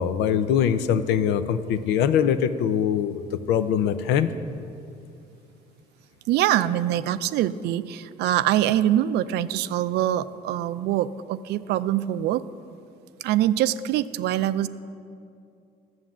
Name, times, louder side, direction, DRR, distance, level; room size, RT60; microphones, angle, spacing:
voice 1, 0.0-3.2 3.5-4.3, left 8 dB, 90° left, 12 dB, 0.6 m, -22 dB
voice 2, 6.3-12.4 13.2-14.7, right 12 dB, 75° right, 14 dB, 0.5 m, -24 dB
11.5 x 7.8 x 7.3 m, 2.5 s
cardioid pair, 110°, 17 cm